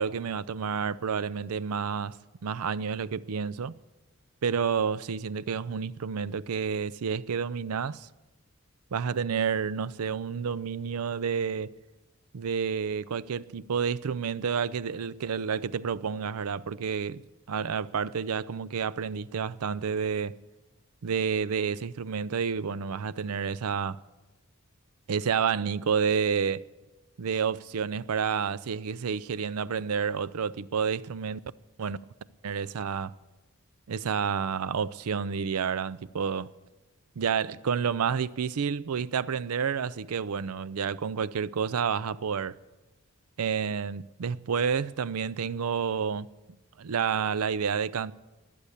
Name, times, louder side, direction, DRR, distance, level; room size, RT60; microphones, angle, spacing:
voice 1, 0.0-2.2 2.4-3.7 4.4-8.1 8.9-11.7 12.3-20.3 21.0-24.0 25.1-26.7 27.2-31.4 31.8-32.0 32.4-33.1 33.9-36.5 37.2-42.6 43.4-46.3 46.8-48.1, right 6 dB, 85° right, 0.5 m, -29 dB
19.5 x 6.9 x 8.5 m
head